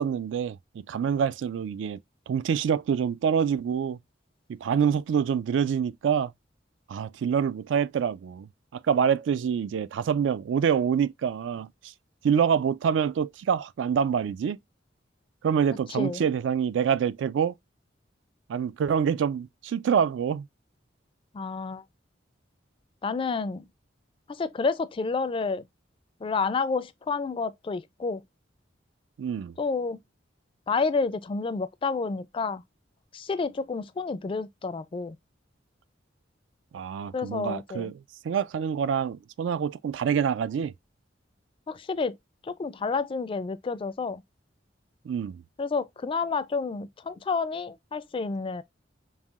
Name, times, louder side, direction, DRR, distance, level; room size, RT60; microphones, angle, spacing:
voice 1, 0.0-2.0 2.3-4.0 4.5-6.3 6.9-11.7 12.2-14.6 15.4-17.5 18.5-20.5 29.2-29.5 36.7-37.9 38.2-40.7 45.1-45.4, right 7 dB, 70° right, 0.3 m, -26 dB
voice 2, 21.3-21.8 23.0-23.7 24.3-25.6 26.2-28.2 29.6-30.0 30.7-32.6 33.1-35.2 37.1-37.9 41.7-42.1 42.4-44.2 45.6-48.6, left 4 dB, 30° left, 0.3 m, -29 dB
5.4 x 2.7 x 2.3 m
head